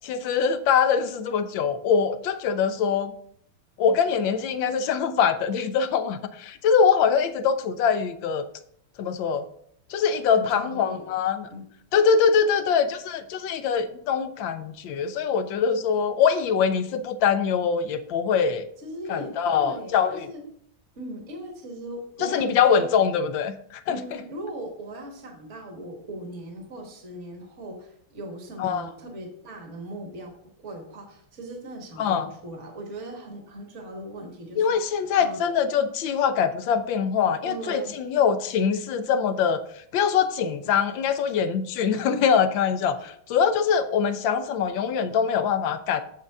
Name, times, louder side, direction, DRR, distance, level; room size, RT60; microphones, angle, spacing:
voice 1, 0.0-3.1 3.8-8.4 9.0-9.4 9.9-11.5 11.9-18.7 19.1-20.3 22.2-24.0 28.6-28.9 32.0-32.3 34.6-39.6 39.9-46.0, left 7 dB, 75° left, 11 dB, 1.4 m, -23 dB
voice 2, 10.3-11.0 11.5-11.7 18.8-20.5 20.9-23.0 23.9-35.4 37.4-38.0 42.9-43.1, right 1 dB, 40° right, 2 dB, 1.6 m, -39 dB
7.4 x 6.6 x 3.5 m, 0.65 s
omnidirectional pair, 2.1 m